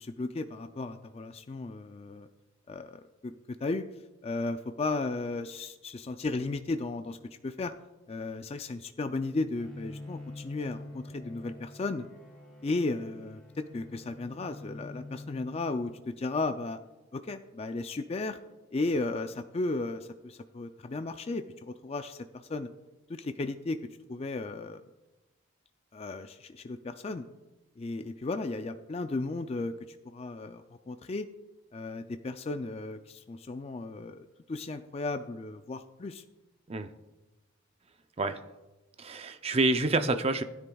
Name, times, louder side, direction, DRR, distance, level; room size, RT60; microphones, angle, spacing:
voice 1, 0.0-2.3 2.7-3.9 4.2-7.7 8.1-12.1 12.6-16.8 17.1-18.4 18.7-22.7 23.1-23.8 24.1-24.8 25.9-27.3 27.8-31.3 31.7-36.2, left 3 dB, 30° left, 8 dB, 0.3 m, -35 dB
Bowed string instrument, 9.6-16.2, left 2 dB, ahead, 2.1 m, -46 dB
voice 2, 39.0-40.4, right 2 dB, 30° right, 9 dB, 0.5 m, -27 dB
16.0 x 9.8 x 2.3 m, 1.0 s
head